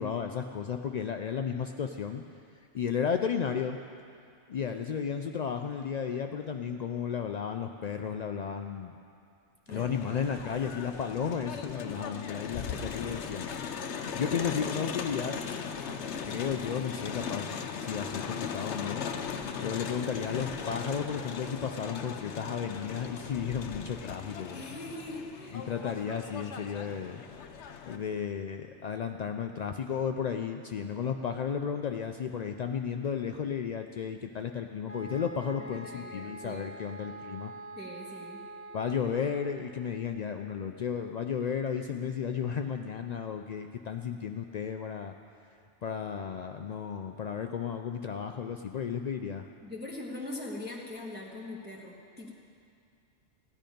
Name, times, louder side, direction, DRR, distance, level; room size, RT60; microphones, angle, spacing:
voice 1, 0.0-2.2 2.7-3.8 4.5-9.0 9.7-15.4 16.3-19.0 19.6-24.6 25.5-27.2 27.9-37.5 38.7-45.1 45.8-49.5, left 7 dB, 90° left, 5 dB, 0.3 m, -33 dB
Crowd, 9.7-28.0, left 6 dB, 65° left, 1.0 m, -38 dB
voice 2, 24.5-25.6 35.6-36.7 37.8-38.5 49.6-52.3, left 1 dB, 10° right, -4 dB, 1.2 m, -42 dB
sound 1, 34.9-39.6, right 1 dB, 15° left, 0.5 m, -45 dB
16.0 x 10.0 x 5.2 m, 2.4 s
omnidirectional pair, 1.3 m